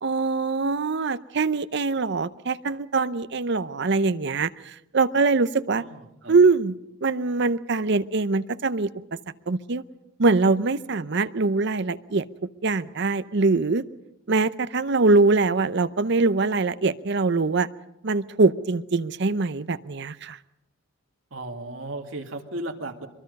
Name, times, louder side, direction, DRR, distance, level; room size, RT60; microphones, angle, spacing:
voice 1, 0.0-5.8 6.3-6.8 7.0-8.9 9.5-9.8 10.2-12.2 12.6-13.8 14.3-17.7 18.0-20.4, right 3 dB, 60° right, 13 dB, 0.7 m, -23 dB
voice 2, 5.8-6.3 21.3-23.1, right 2 dB, 75° right, 3 dB, 2.2 m, -35 dB
23.5 x 23.0 x 5.4 m, 0.86 s
head